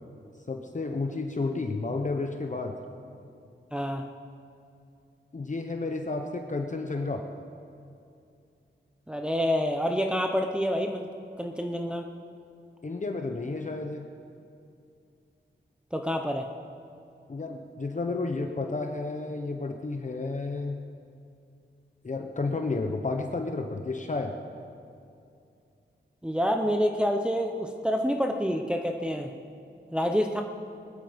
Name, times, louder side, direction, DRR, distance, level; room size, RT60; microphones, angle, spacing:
voice 1, 0.5-2.7 5.3-7.2 12.8-14.0 17.3-20.8 22.0-24.3, left 3 dB, 40° left, 4 dB, 1.0 m, -31 dB
voice 2, 3.7-4.1 9.1-11.1 11.4-12.1 15.9-16.5 26.2-29.3 29.9-30.4, equal, 5° right, 3 dB, 0.9 m, -27 dB
20.5 x 11.5 x 5.2 m, 2.5 s
wide cardioid pair, 80°, 19 cm